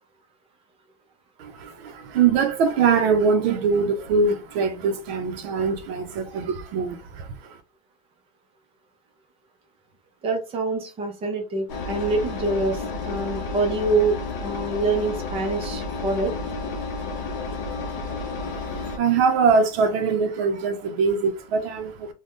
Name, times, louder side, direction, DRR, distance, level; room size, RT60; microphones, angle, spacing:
voice 1, 1.4-7.6 18.4-22.1, right 5 dB, 60° right, 0.6 m, -23 dB
voice 2, 10.2-16.3, right 3 dB, 15° right, 0.5 m, -25 dB
Engine, 11.7-19.0, left 3 dB, 45° left, 0.7 m, -31 dB
2.5 x 2.2 x 3.4 m
supercardioid pair, 155°, 34 cm